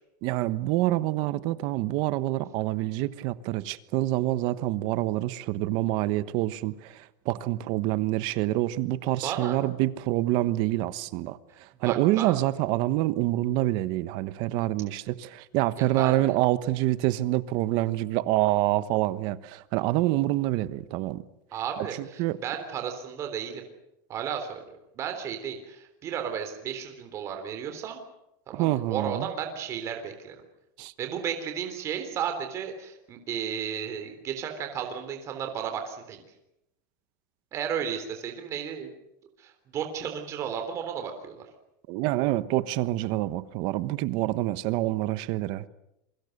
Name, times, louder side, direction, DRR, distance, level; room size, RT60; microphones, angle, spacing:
voice 1, 0.2-21.2 21.8-22.4 28.5-29.3 30.8-30.9 41.9-45.7, right 16 dB, 45° right, 14 dB, 1.2 m, -27 dB
voice 2, 9.2-9.6 11.8-12.3 15.8-16.2 21.5-23.6 24.1-28.0 28.5-30.4 31.0-36.2 37.5-38.9 39.4-41.5, right 8 dB, 25° right, 5 dB, 3.6 m, -34 dB
28.0 x 24.0 x 6.7 m, 0.85 s
supercardioid pair, 170°, 11 cm